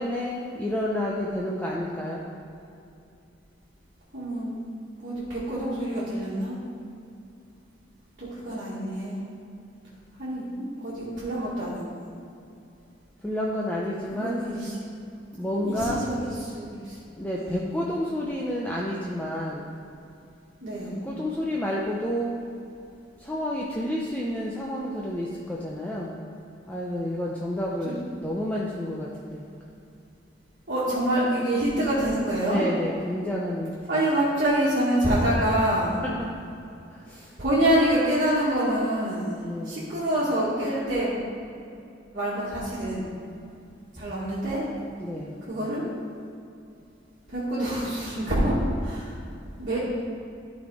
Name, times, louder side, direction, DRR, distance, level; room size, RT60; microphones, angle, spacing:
voice 1, 0.0-2.2 13.2-14.4 15.3-16.1 17.2-19.7 21.0-22.4 23.2-26.2 26.7-29.6 32.5-34.0 36.0-36.3 36.9-37.3 39.4-39.9 45.0-45.5, left 1 dB, 10° left, -4 dB, 0.6 m, -30 dB
voice 2, 4.1-4.6 5.0-6.6 8.2-9.2 10.2-11.9 14.2-14.7 15.5-17.0 17.4-17.6 20.6-21.0 27.9-28.0 30.7-32.7 33.9-36.0 37.4-39.3 39.6-41.3 42.1-43.0 44.0-44.7 45.4-45.8 47.3-48.6 48.8-49.1 49.6-49.8, right 1 dB, 50° right, -10 dB, 1.9 m, -26 dB
12.5 x 4.3 x 4.8 m, 2.6 s
head